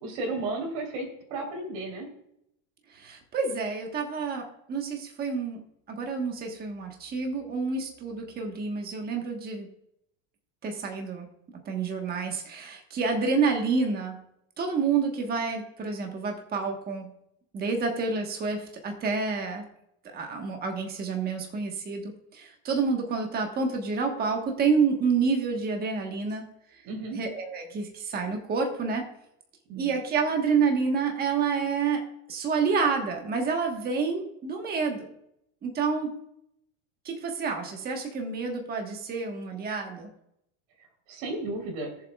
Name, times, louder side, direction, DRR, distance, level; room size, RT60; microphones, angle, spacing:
voice 1, 0.0-2.1 26.8-27.2 29.7-30.0 41.1-41.9, right 2 dB, 70° right, 1 dB, 3.7 m, -33 dB
voice 2, 2.9-5.6 5.9-9.7 10.6-11.3 11.6-14.2 14.6-17.1 17.5-19.7 20.0-26.4 26.7-26.8 27.1-29.1 29.8-32.0 32.3-35.1 35.6-36.1 37.0-40.1, right 5 dB, 20° right, 3 dB, 1.3 m, -28 dB
20.5 x 7.3 x 2.3 m, 0.78 s
cardioid pair, 160°, 42 cm